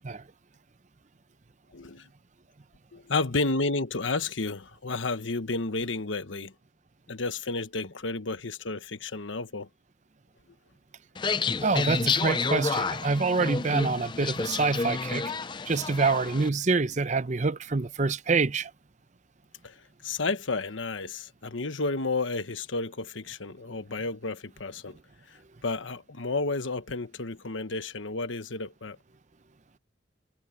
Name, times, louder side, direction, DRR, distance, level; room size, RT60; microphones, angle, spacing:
voice 1, 1.7-2.1 2.9-6.5 7.1-9.7 19.6-19.7 20.0-25.0 25.6-29.0, left 3 dB, 85° left, 1.3 m, -31 dB
sound 1, 11.1-16.5, left 4 dB, 25° left, 0.5 m, -30 dB
voice 2, 11.6-15.3 15.7-18.7, right 4 dB, 40° right, 0.7 m, -26 dB
head